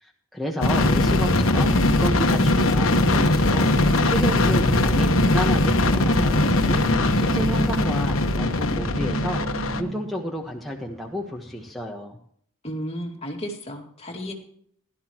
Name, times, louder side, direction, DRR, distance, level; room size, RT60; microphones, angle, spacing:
voice 1, 0.0-3.7 4.1-6.8 7.1-9.4 9.8-12.2, equal, ahead, -2 dB, 1.2 m, -31 dB
sound 1, 0.6-9.8, left 2 dB, 75° left, 1.3 m, -20 dB
sound 2, 8.4-11.7, equal, 85° right, 2.5 m, -38 dB
voice 2, 12.6-14.3, equal, 30° left, 2 dB, 2.3 m, -33 dB
17.0 x 12.5 x 3.0 m, 0.62 s
head